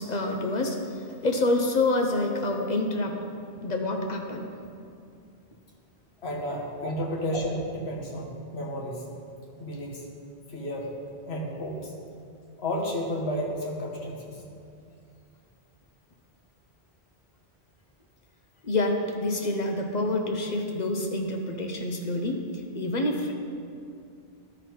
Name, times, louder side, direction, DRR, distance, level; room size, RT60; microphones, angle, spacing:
voice 1, 0.0-3.2 3.6-4.4 6.8-6.9 18.6-22.4 22.7-23.3, left 2 dB, 45° left, 2 dB, 0.7 m, -27 dB
voice 2, 6.2-9.0 9.6-10.1 10.5-10.9 11.3-11.9 12.6-14.4, equal, 75° left, -1 dB, 1.4 m, -32 dB
12.0 x 4.0 x 4.5 m, 2.4 s
omnidirectional pair, 1.1 m